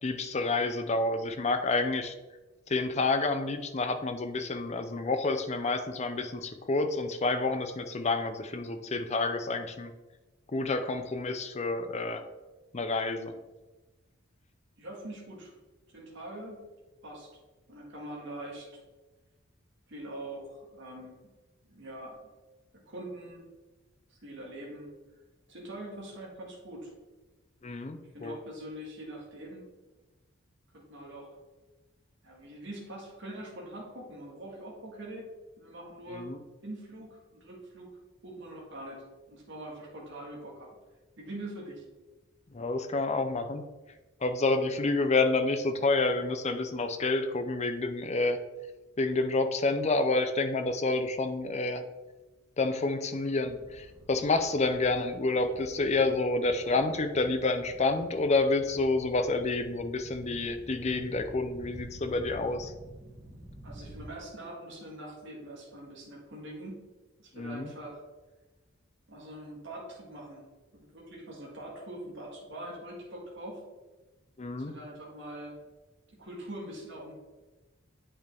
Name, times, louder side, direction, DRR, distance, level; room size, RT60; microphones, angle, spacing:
voice 1, 0.0-2.1 2.7-9.9 10.5-12.2 12.7-13.3 27.6-28.3 36.1-36.4 42.5-43.6 44.2-48.4 49.0-51.8 52.6-62.7 67.3-67.7 74.4-74.8, left 3 dB, 30° left, 8 dB, 0.5 m, -29 dB
voice 2, 14.8-15.5 15.9-16.6 17.0-17.3 17.7-18.7 19.9-21.2 21.7-22.2 22.9-23.5 24.1-24.9 25.5-26.9 28.1-29.7 30.7-31.4 32.2-35.3 35.6-36.3 36.6-37.9 38.2-40.7 41.2-41.8 63.6-66.8 67.2-68.0 69.1-70.4 70.7-73.6 74.6-75.6 76.2-77.1, right 1 dB, 60° right, -3 dB, 1.7 m, -43 dB
sound 1, 53.5-64.1, equal, 15° right, 1.5 m, -49 dB
8.5 x 5.4 x 3.5 m, 1.2 s
head